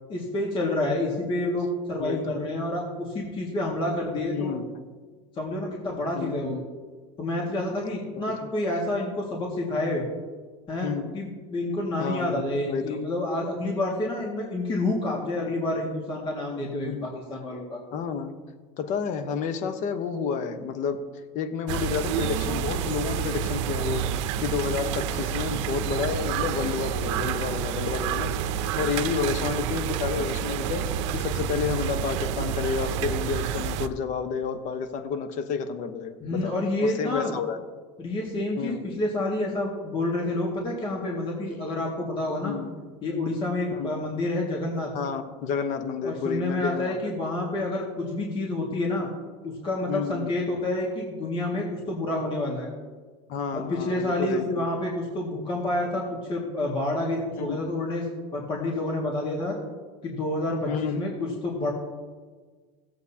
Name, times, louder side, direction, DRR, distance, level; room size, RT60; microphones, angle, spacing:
voice 1, 0.1-4.6 5.3-6.6 7.2-10.0 10.7-17.8 36.2-37.3 38.0-42.6 43.0-44.9 46.0-49.1 49.4-52.7 53.5-56.0 56.3-58.1 58.3-59.6 60.0-61.7, left 2 dB, 35° left, -2 dB, 2.0 m, -28 dB
voice 2, 2.0-2.4 4.3-4.8 6.1-6.6 10.8-11.1 12.0-13.0 16.8-17.1 17.9-18.3 18.8-21.0 21.3-24.1 24.4-30.9 31.1-36.5 36.8-37.6 38.6-38.8 42.4-42.7 43.7-43.9 44.9-47.0 49.9-50.3 53.3-54.6 57.5-57.6 60.7-61.0, left 6 dB, 55° left, 8 dB, 1.0 m, -30 dB
sound 1, 21.7-33.9, right 8 dB, 80° right, 0.7 m, -29 dB
17.0 x 7.9 x 2.8 m, 1.5 s
supercardioid pair, 120°, 15 cm